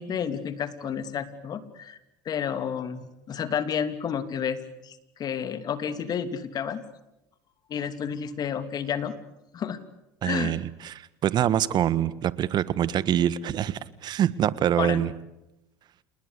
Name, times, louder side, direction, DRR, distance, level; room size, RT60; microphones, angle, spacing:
voice 1, 0.0-2.0 2.2-6.8 7.7-9.1 9.5-9.8 10.2-10.5 14.8-15.0, left 7 dB, 45° left, 12 dB, 3.0 m, -31 dB
voice 2, 10.2-15.1, right 10 dB, 50° right, 17 dB, 1.6 m, -25 dB
29.0 x 21.0 x 8.3 m, 0.90 s
supercardioid pair, 80°, 9 cm